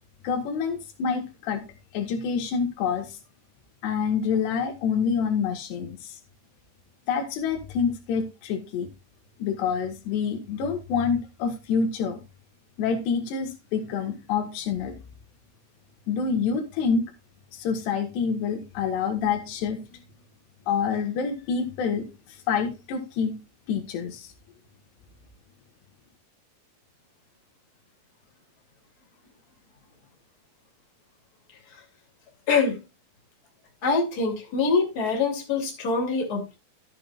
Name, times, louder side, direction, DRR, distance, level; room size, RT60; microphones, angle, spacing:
voice 1, 0.2-1.7 1.9-3.2 3.8-6.2 7.1-8.9 9.4-12.2 12.8-15.0 16.1-17.1 17.5-19.8 20.7-22.1 22.5-23.4 23.7-24.3, left 6 dB, 85° left, 6 dB, 3.6 m, -27 dB
voice 2, 32.5-32.8 33.8-36.5, left 4 dB, 25° left, -1 dB, 2.9 m, -24 dB
12.5 x 8.4 x 2.4 m, 0.28 s
omnidirectional pair, 4.7 m